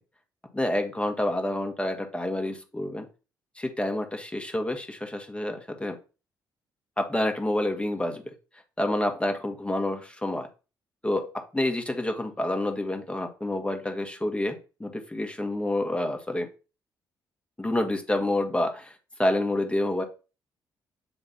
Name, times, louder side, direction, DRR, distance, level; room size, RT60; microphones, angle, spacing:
voice 1, 0.5-3.1 3.6-6.0 7.0-8.2 8.8-10.5 11.0-16.5 17.6-20.0, left 1 dB, 10° left, 4 dB, 1.5 m, -28 dB
7.9 x 3.2 x 4.2 m, 0.33 s
figure-of-eight pair, 40°, 10 cm